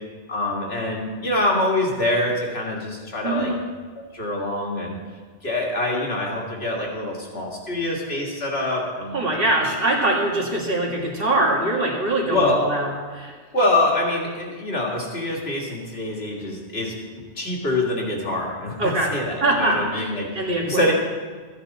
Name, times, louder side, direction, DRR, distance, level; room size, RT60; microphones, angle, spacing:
voice 1, 0.3-3.5 4.1-5.0 5.4-9.2 12.3-12.6 13.5-16.9 17.4-20.3 20.7-20.9, left 1 dB, 65° left, -1 dB, 2.3 m, -25 dB
voice 2, 3.2-3.6 9.1-13.3 18.8-19.1 19.4-20.9, right 2 dB, 55° right, -2 dB, 2.1 m, -23 dB
14.0 x 9.5 x 4.1 m, 1.5 s
omnidirectional pair, 1.2 m